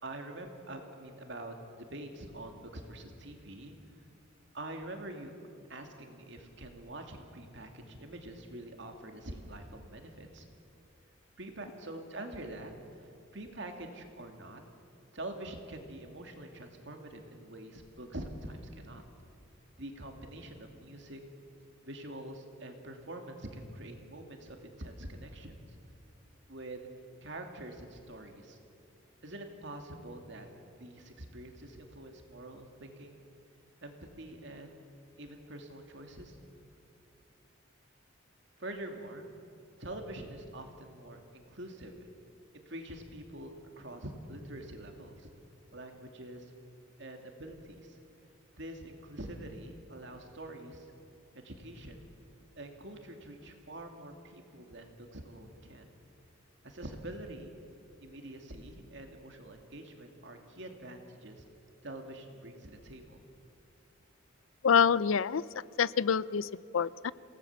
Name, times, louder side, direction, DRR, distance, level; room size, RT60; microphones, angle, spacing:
voice 1, 0.0-4.1 4.5-5.3 5.7-10.5 11.4-12.7 13.0-14.6 15.1-19.0 19.8-21.2 21.8-25.8 26.5-26.9 27.2-28.6 29.2-30.5 30.7-33.2 33.8-34.8 35.2-36.4 38.6-39.3 39.8-42.1 42.5-45.3 45.7-46.5 47.0-48.0 48.6-50.9 51.3-52.1 52.6-55.9 56.6-57.5 58.0-61.4 61.8-63.2, right 1 dB, 60° right, 4 dB, 2.6 m, -45 dB
voice 2, 64.6-65.4 65.8-67.1, left 7 dB, 80° left, 19 dB, 0.5 m, -26 dB
27.0 x 18.0 x 7.3 m, 2.7 s
head